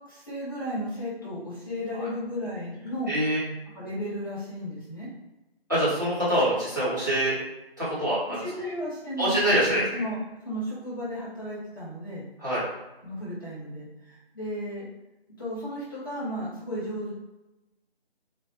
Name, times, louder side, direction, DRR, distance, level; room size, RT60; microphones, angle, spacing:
voice 1, 0.0-3.2 3.7-5.1 8.4-10.2 10.4-12.3 13.0-14.8 15.4-17.1, equal, 20° left, -11 dB, 0.8 m, -34 dB
voice 2, 3.1-3.4 5.7-7.3 7.8-8.4 9.2-9.8 12.4-12.6, right 1 dB, 20° right, -11 dB, 0.7 m, -25 dB
2.6 x 2.0 x 3.0 m, 1.0 s
figure-of-eight pair, 165°, 32 cm